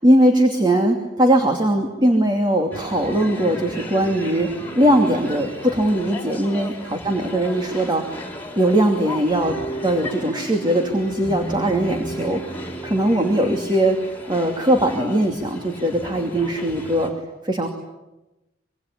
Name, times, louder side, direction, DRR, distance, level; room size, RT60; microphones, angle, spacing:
voice 1, 0.0-4.5 4.8-6.7 7.1-8.2 8.6-17.1 17.4-17.7, right 1 dB, 25° right, 3 dB, 2.7 m, -20 dB
sound 1, 2.7-17.1, equal, 10° left, 4.7 m, -34 dB
26.0 x 23.0 x 9.9 m, 1.0 s
head